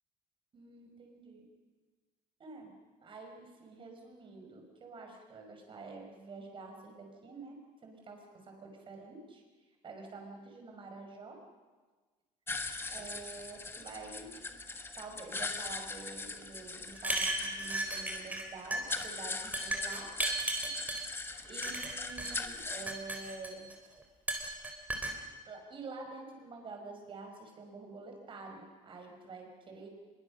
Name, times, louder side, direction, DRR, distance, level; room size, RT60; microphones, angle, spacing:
voice 1, 0.5-1.5 2.4-2.7 3.0-9.4 9.8-11.4 12.9-14.4 15.0-20.1 20.6-21.2 21.4-23.7 25.5-29.9, right 3 dB, 35° right, 3 dB, 5.7 m, -48 dB
sound 1, 12.5-22.9, left 3 dB, 15° left, 1.5 m, -41 dB
sound 2, 17.0-18.5 18.7-19.1 19.5-21.0 21.6-22.3 22.7-23.7 24.3-25.1, right 2 dB, 10° right, 3.8 m, -35 dB
25.0 x 22.5 x 6.5 m, 1.4 s
cardioid pair, 130°, 15 cm